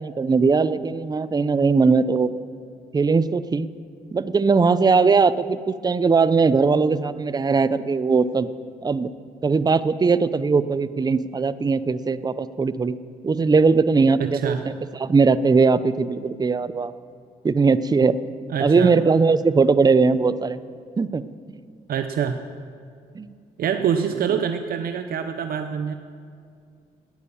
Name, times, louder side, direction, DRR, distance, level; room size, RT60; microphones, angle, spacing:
voice 1, 0.0-2.3 2.9-3.7 4.1-8.5 8.8-9.1 9.4-13.0 13.2-14.6 15.0-16.9 17.4-18.2 18.6-20.6 21.0-21.2 23.1-23.3, right 4 dB, 25° right, 14 dB, 0.6 m, -19 dB
voice 2, 14.2-14.6 18.5-18.9 21.9-22.4 23.6-25.9, right 8 dB, 70° right, 8 dB, 0.7 m, -25 dB
15.5 x 9.6 x 7.0 m, 2.3 s
cardioid pair, 75°, 16 cm